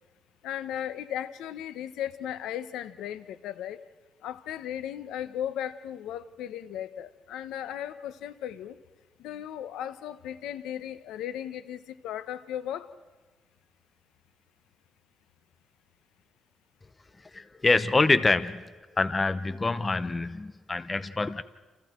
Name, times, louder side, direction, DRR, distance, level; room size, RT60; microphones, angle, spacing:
voice 1, 0.4-3.8 4.2-8.8 9.2-12.9, left 10 dB, 90° left, 12 dB, 1.1 m, -36 dB
voice 2, 17.3-21.4, left 3 dB, 25° left, 13 dB, 1.0 m, -26 dB
29.0 x 29.0 x 4.6 m, 1.3 s
cardioid pair, 95°, 0 cm